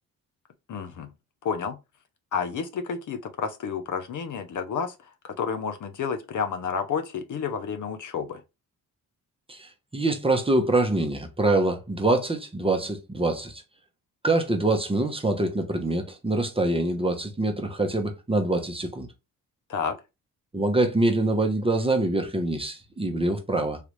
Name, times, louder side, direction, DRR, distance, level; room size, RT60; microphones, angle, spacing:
voice 1, 0.7-1.1 1.4-1.8 2.3-8.4 19.7-20.0, left 6 dB, 55° left, 0.7 m, -30 dB
voice 2, 9.5-13.6 14.2-19.1 20.5-23.8, right 2 dB, 15° right, 0.8 m, -25 dB
3.2 x 2.4 x 3.1 m
cardioid pair, 70°, 36 cm